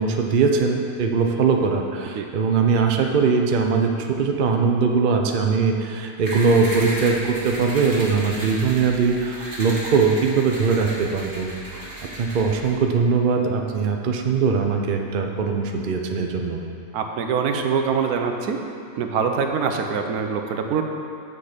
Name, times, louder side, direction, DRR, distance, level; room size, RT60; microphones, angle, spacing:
voice 1, 0.0-11.5 11.8-11.9 12.2-16.6, right 5 dB, 50° right, 3 dB, 0.6 m, -21 dB
sound 1, 6.2-12.7, right 1 dB, 15° right, 1.2 m, -34 dB
voice 2, 16.9-18.6 19.0-20.8, right 6 dB, 85° right, 4 dB, 1.2 m, -24 dB
7.1 x 6.5 x 5.0 m, 2.5 s
omnidirectional pair, 1.6 m